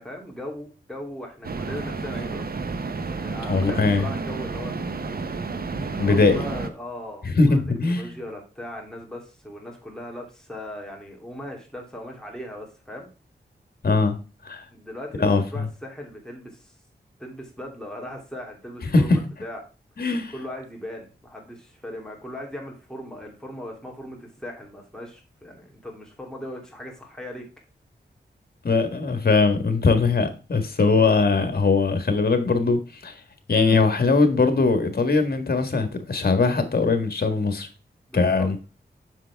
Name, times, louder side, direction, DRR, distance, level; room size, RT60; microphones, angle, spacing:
voice 1, 0.0-2.5 3.1-4.9 5.8-13.1 14.7-16.7 17.2-19.6 20.3-27.5 38.1-38.5, left 1 dB, 5° left, -1 dB, 3.0 m, -38 dB
sound 1, 1.4-6.7, right 4 dB, 55° right, 1.0 m, -31 dB
voice 2, 3.5-4.1 6.0-6.4 7.2-8.1 13.8-14.2 14.4-14.7 15.2-15.7 18.9-19.0 20.0-20.3 28.6-33.2 33.5-37.7 38.1-38.6, left 3 dB, 55° left, 8 dB, 1.7 m, -21 dB
7.4 x 6.8 x 3.5 m, 0.33 s
wide cardioid pair, 75°, 18 cm